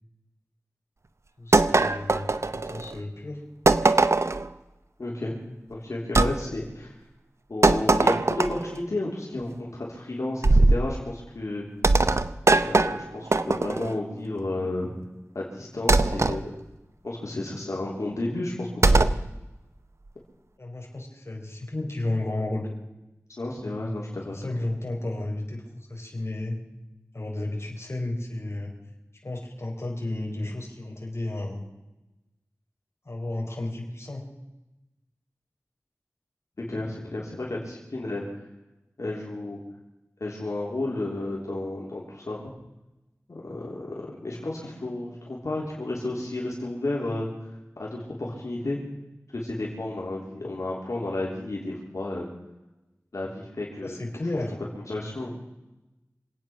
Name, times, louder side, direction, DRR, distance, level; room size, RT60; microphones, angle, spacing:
voice 1, 1.4-2.3 2.5-3.4 20.6-22.7 24.3-26.6 27.1-28.7 29.2-31.6 33.0-34.2 53.8-54.5, left 2 dB, 55° left, 0 dB, 4.2 m, -32 dB
sound 1, 1.5-2.9 3.7-4.5 6.1-6.3 7.6-8.7 10.4-10.9 11.8-13.9 15.9-16.4 18.8-19.2, right 2 dB, 60° right, 0.8 m, -20 dB
voice 2, 5.0-5.4 5.7-6.9 7.5-11.7 12.5-14.9 15.4-16.6 17.0-19.1 23.4-24.4 36.7-38.4 39.0-39.6 40.2-42.5 43.3-47.3 47.8-48.8 49.3-52.3 53.1-54.0 54.8-55.4, left 2 dB, 80° left, -3 dB, 3.4 m, -32 dB
26.0 x 9.1 x 6.1 m, 0.99 s
wide cardioid pair, 60°, 5 cm